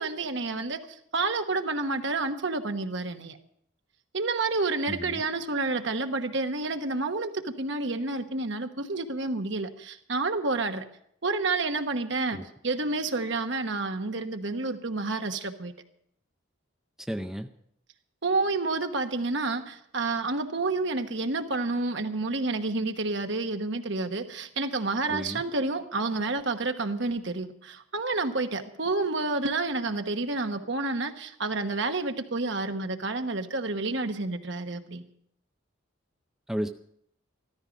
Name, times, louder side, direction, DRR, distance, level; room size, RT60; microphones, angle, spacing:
voice 1, 0.0-3.4 4.1-10.8 11.2-12.4 12.6-15.7 18.2-35.0, right 3 dB, 60° right, 6 dB, 1.2 m, -29 dB
voice 2, 4.9-5.2 12.3-12.5 17.1-17.5 25.1-25.4 36.5-36.7, equal, ahead, 5 dB, 0.5 m, -33 dB
14.5 x 13.5 x 5.2 m, 0.70 s
head